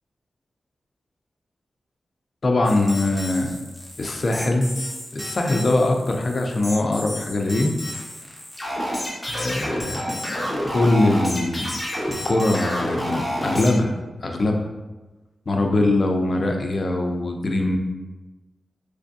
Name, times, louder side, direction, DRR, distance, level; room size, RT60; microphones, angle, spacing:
voice 1, 2.4-3.5 4.0-4.7 5.1-7.8 9.3-10.2 10.4-11.7 12.0-13.9 14.2-14.7 15.5-17.8, left 2 dB, 50° left, 2 dB, 0.5 m, -22 dB
sound 1, 2.6-13.7, equal, 10° left, 1.0 m, -30 dB
3.4 x 3.2 x 2.6 m, 1.2 s
wide cardioid pair, 85°, 0 cm